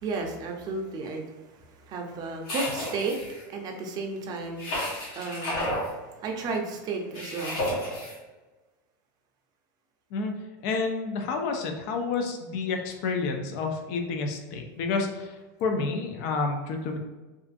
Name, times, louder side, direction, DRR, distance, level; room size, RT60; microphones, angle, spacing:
voice 1, 0.0-1.3 1.9-3.2 3.5-7.6, right 3 dB, 40° right, 2 dB, 0.5 m, -33 dB
sound 1, 2.5-3.4 4.6-5.9 7.1-8.2, left 1 dB, 75° left, 1.2 m, -31 dB
voice 2, 10.6-15.3 15.6-17.0, left 4 dB, 60° left, 4 dB, 0.4 m, -29 dB
2.5 x 2.4 x 2.4 m, 1.2 s
supercardioid pair, 110°, 11 cm